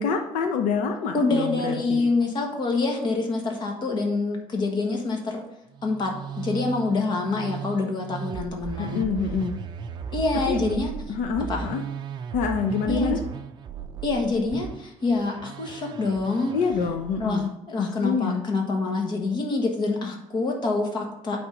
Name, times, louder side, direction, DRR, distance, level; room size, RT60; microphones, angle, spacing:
voice 1, 0.0-2.0 8.8-9.6 10.5-10.6 11.1-11.8 12.3-13.2 16.5-17.5 17.8-18.4, left 5 dB, 80° left, 5 dB, 0.7 m, -26 dB
voice 2, 1.1-5.4 5.8-9.0 10.1-10.9 11.5-11.7 12.9-13.2 14.0-16.5 17.2-21.4, left 3 dB, 35° left, 2 dB, 1.4 m, -26 dB
Musical instrument, 5.7-17.5, right 7 dB, 35° right, 0.5 m, -36 dB
8.8 x 3.6 x 5.1 m, 0.84 s
cardioid pair, 150°, 13 cm